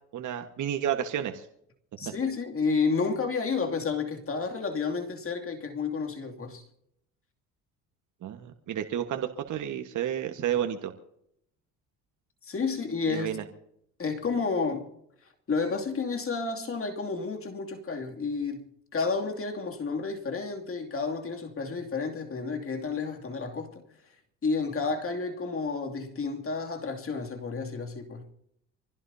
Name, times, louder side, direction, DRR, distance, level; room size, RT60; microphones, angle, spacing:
voice 1, 0.1-1.4 2.0-2.1 8.2-10.9 13.1-13.4, right 10 dB, 55° right, 1.5 m, -31 dB
voice 2, 2.0-6.6 12.4-13.3 14.0-14.9 15.5-18.7 18.9-23.8 24.4-28.2, left 4 dB, 35° left, 2.7 m, -31 dB
25.5 x 16.5 x 2.8 m
hypercardioid pair, 65°, 36 cm